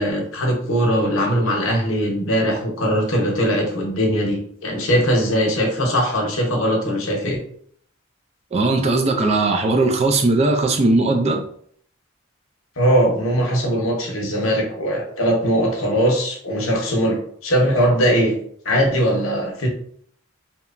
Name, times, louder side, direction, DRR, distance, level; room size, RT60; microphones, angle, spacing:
voice 1, 0.0-7.4 12.8-18.3 18.6-19.7, equal, 80° left, 0 dB, 0.8 m, -20 dB
voice 2, 8.5-11.4, right 2 dB, 30° right, 4 dB, 0.3 m, -18 dB
2.9 x 2.2 x 2.4 m, 0.62 s
head